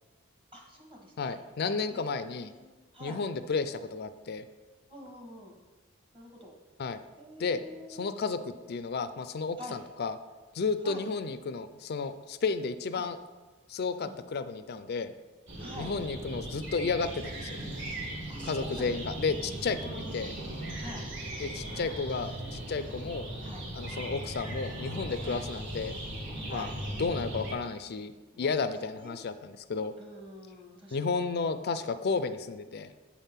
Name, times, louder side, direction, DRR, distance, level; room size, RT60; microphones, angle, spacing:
voice 1, 0.5-1.4 1.9-3.2 4.9-5.6 6.1-6.5 7.2-8.1 9.6-9.8 10.8-11.0 12.9-13.1 14.0-14.2 15.6-15.9 18.3-18.9 19.3-19.5 19.8-20.5 20.8-21.0 21.5-22.0 23.4-24.1 25.2-25.4 26.5-26.7 28.3-28.5 29.0-29.2 30.0-31.0, left 1 dB, 25° right, 0 dB, 1.1 m, -47 dB
voice 2, 1.2-2.5 3.0-4.4 6.8-7.0 7.4-7.6 7.9-10.2 10.5-13.2 13.7-15.1 15.8-17.6 18.4-20.3 21.4-23.3 23.7-25.9 26.5-26.7 27.0-28.1 28.4-29.9 30.9-32.9, left 4 dB, 45° left, 11 dB, 0.3 m, -32 dB
sound 1, 15.5-27.5, right 1 dB, 55° right, 1.6 m, -38 dB
8.4 x 3.6 x 5.7 m, 1.3 s
head